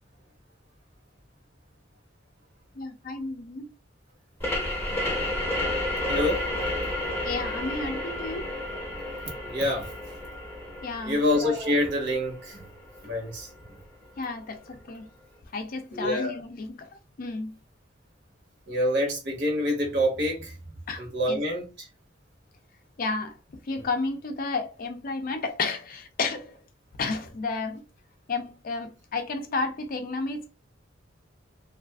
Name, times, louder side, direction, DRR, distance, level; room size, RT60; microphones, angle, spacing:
voice 1, 2.8-3.7 7.2-8.5 10.8-11.2 14.2-15.1 15.5-16.9 17.2-17.6 20.9-21.0 21.3-21.4 23.0-23.4 23.7-26.6 27.0-27.8 28.3-30.5, left 3 dB, 45° left, 0.4 m, -32 dB
sound 1, 4.4-13.8, left 1 dB, 10° left, 0.7 m, -32 dB
voice 2, 6.1-6.7 7.8-7.9 9.4-9.9 11.0-12.7 13.0-13.5 15.9-16.4 18.7-20.6 21.0-21.9 23.7-23.8, left 1 dB, 60° right, 1.0 m, -27 dB
2.4 x 2.4 x 2.3 m
head